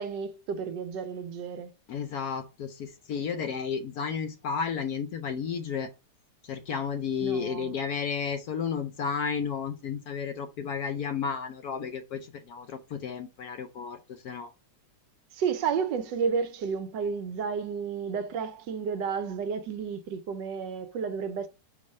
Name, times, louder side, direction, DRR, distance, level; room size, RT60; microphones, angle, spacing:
voice 1, 0.0-1.7 7.2-7.7 15.3-21.5, right 6 dB, 75° right, 1.3 m, -31 dB
voice 2, 1.9-5.9 6.4-14.5, left 6 dB, 65° left, 1.0 m, -32 dB
4.7 x 4.6 x 5.4 m
omnidirectional pair, 2.0 m